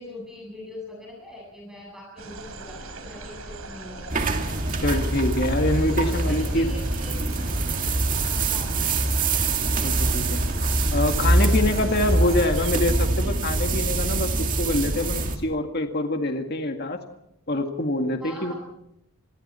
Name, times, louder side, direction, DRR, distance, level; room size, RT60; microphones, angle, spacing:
voice 1, 0.0-4.1 4.6-4.7 6.0-7.3 8.4-8.9 12.2-12.4 18.2-18.5, left 1 dB, 5° right, -2 dB, 7.9 m, -42 dB
sound 1, 2.2-12.7, right 2 dB, 80° right, 4.3 m, -40 dB
sound 2, 4.1-15.4, right 2 dB, 35° right, 2.3 m, -24 dB
voice 2, 4.8-6.7 9.8-10.4 10.9-14.3 14.6-17.0 17.5-18.5, left 1 dB, 45° left, 4 dB, 2.0 m, -25 dB
29.0 x 23.0 x 4.4 m, 0.76 s
head